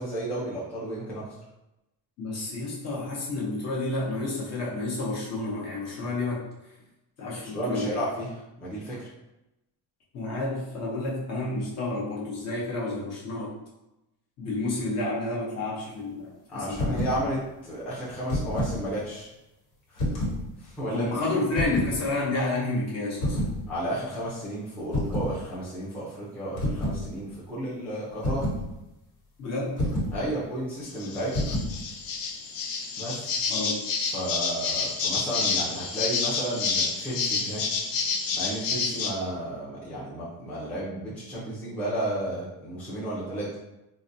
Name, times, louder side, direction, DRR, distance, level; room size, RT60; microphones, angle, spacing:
voice 1, 0.0-1.3 7.4-9.1 16.5-19.3 19.9-20.1 20.6-21.1 23.7-28.4 30.1-31.5 33.0-33.3 34.1-37.7 38.3-43.5, right 1 dB, 5° left, -9 dB, 0.5 m, -33 dB
voice 2, 2.2-6.4 7.2-7.9 10.1-13.5 14.4-16.9 20.9-23.4 29.4-29.8 33.5-33.8, left 2 dB, 40° left, -5 dB, 0.9 m, -30 dB
sound 1, 16.7-17.2 18.1-18.8 20.0-20.4 21.5-22.0 23.2-23.6 24.9-25.3 26.6-27.0 28.2-28.6 29.8-30.2 31.3-31.8, left 1 dB, 90° left, 1.3 m, -28 dB
sound 2, 30.8-39.1, left 5 dB, 55° left, 0.5 m, -29 dB
3.9 x 2.2 x 2.6 m, 0.94 s
cardioid pair, 180°, 40 cm